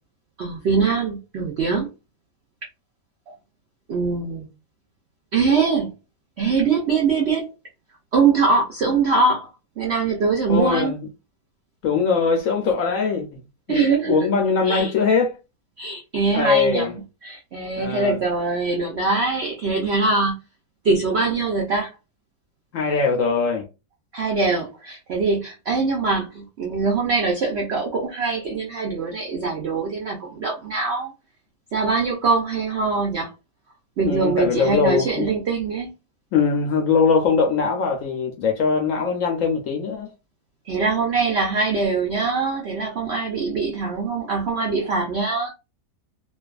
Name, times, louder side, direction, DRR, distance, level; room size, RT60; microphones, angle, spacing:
voice 1, 0.4-1.9 3.9-4.5 5.3-5.9 6.4-7.5 8.1-9.5 9.8-10.9 13.7-14.3 14.6-14.9 15.8-20.3 20.8-21.9 24.1-31.1 31.7-33.3 34.0-35.9 40.6-45.5, right 4 dB, 70° right, 0.6 m, -22 dB
voice 2, 10.5-11.1 11.8-13.4 13.7-15.4 16.3-16.9 17.8-18.2 22.7-23.7 34.0-35.3 36.3-40.1, left 5 dB, 70° left, 0.8 m, -21 dB
2.5 x 2.3 x 2.3 m
omnidirectional pair, 1.8 m